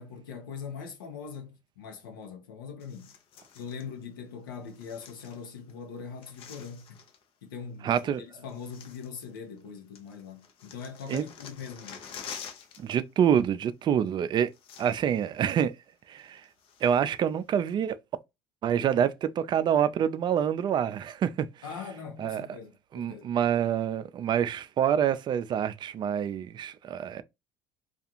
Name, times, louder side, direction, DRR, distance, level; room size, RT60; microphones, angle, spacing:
voice 1, 0.0-3.1 3.5-7.0 7.4-12.1 21.6-23.3, left 6 dB, 90° left, 0.7 m, -42 dB
sound 1, 2.8-3.9 4.7-5.7 6.0-7.2 8.1-8.2 8.5-9.7 10.0-13.0 13.2-13.4 14.2-14.3 14.5-15.2 15.6-15.7 16.2-17.2 17.7-17.8, left 7 dB, 60° left, 0.6 m, -47 dB
voice 2, 7.8-8.2 11.1-11.2 12.8-14.5 14.8-15.7 16.1-16.4 16.8-18.0 18.6-21.5 22.2-22.4 22.9-27.2, right 9 dB, 45° right, 0.4 m, -26 dB
2.4 x 2.4 x 2.8 m
hypercardioid pair, 70°, 11 cm